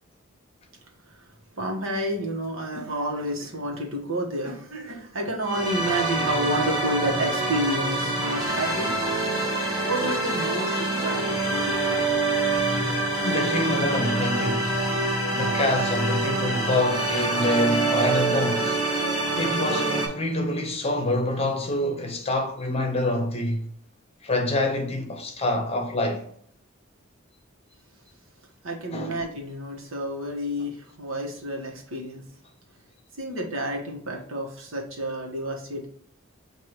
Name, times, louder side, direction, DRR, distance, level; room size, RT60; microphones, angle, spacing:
voice 1, 1.6-8.9 9.8-12.1 12.7-12.8 28.6-32.2 33.2-35.9, right 1 dB, 75° right, 1.2 m, -30 dB
sound 1, 5.4-20.1, right 2 dB, 20° right, 1.5 m, -26 dB
voice 2, 13.2-14.8 15.3-18.9 19.4-23.6 24.2-26.3 28.9-29.2, left 1 dB, 30° left, 0.8 m, -26 dB
6.5 x 2.6 x 3.0 m
head